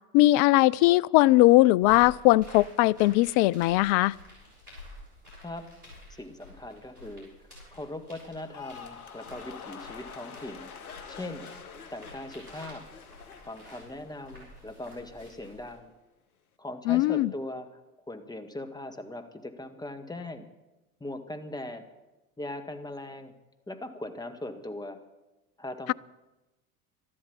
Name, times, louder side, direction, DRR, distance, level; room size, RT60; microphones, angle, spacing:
voice 1, 0.1-4.1 16.9-17.3, left 18 dB, 45° left, 21 dB, 0.4 m, -20 dB
sound 1, 1.8-15.7, left 1 dB, 90° right, 6.7 m, -50 dB
voice 2, 6.1-7.3 7.7-10.7 11.1-11.5 11.9-12.8 13.5-15.9 16.6-17.8 18.1-20.5 21.0-21.8 22.4-23.3 23.7-25.0 25.6-25.9, left 1 dB, 10° left, 7 dB, 1.8 m, -39 dB
sound 2, 8.3-14.7 15.0-15.5, left 7 dB, 75° left, 1.3 m, -46 dB
13.0 x 12.5 x 7.1 m, 1.0 s
figure-of-eight pair, 65°, 44 cm